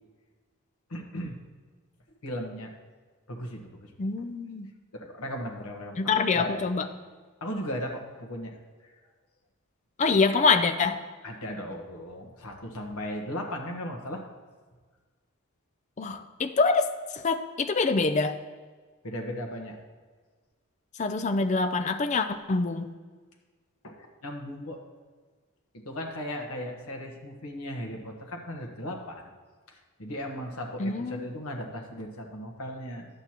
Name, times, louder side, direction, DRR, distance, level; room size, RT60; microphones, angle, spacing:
voice 1, 0.9-1.3 2.2-2.7 3.3-3.9 4.9-6.6 7.4-8.6 11.2-14.2 19.0-19.8 23.8-24.8 25.7-29.3 29.7-33.1, equal, 80° left, 2 dB, 1.2 m, -36 dB
voice 2, 4.0-4.7 6.0-6.9 10.0-11.0 16.0-18.4 21.0-22.9 30.8-31.3, left 4 dB, 30° left, 9 dB, 0.4 m, -25 dB
11.0 x 8.0 x 2.9 m, 1.4 s
head